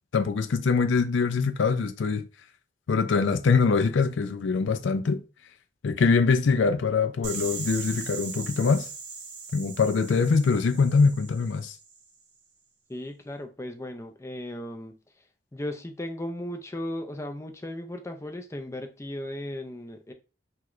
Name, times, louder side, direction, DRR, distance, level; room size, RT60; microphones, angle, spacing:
voice 1, 0.1-2.2 2.9-5.2 5.8-8.9 9.5-11.7, left 4 dB, 75° left, 0.4 m, -23 dB
sound 1, 7.2-12.0, right 5 dB, 70° right, 0.9 m, -39 dB
voice 2, 12.9-15.3 15.5-20.1, left 1 dB, 15° left, 0.4 m, -36 dB
3.2 x 3.0 x 2.4 m
head